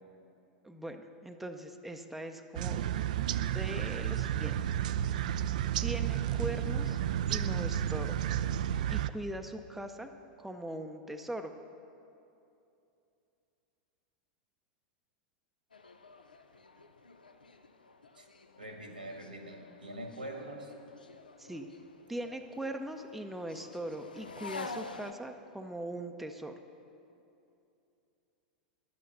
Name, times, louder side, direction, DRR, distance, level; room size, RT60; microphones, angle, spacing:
voice 1, 0.6-2.9 3.3-4.6 5.1-5.4 5.8-7.0 7.3-8.2 8.9-10.1 10.4-11.5 21.4-21.7 22.1-26.5, right 1 dB, 5° right, 5 dB, 0.6 m, -41 dB
sound 1, 2.5-9.1, right 10 dB, 60° right, 0.4 m, -32 dB
sound 2, 15.7-25.1, left 3 dB, 80° left, 0.6 m, -48 dB
voice 2, 18.6-20.7, right 1 dB, 85° right, 2 dB, 1.8 m, -43 dB
11.0 x 8.6 x 6.7 m, 2.7 s
figure-of-eight pair, 90°, 5 cm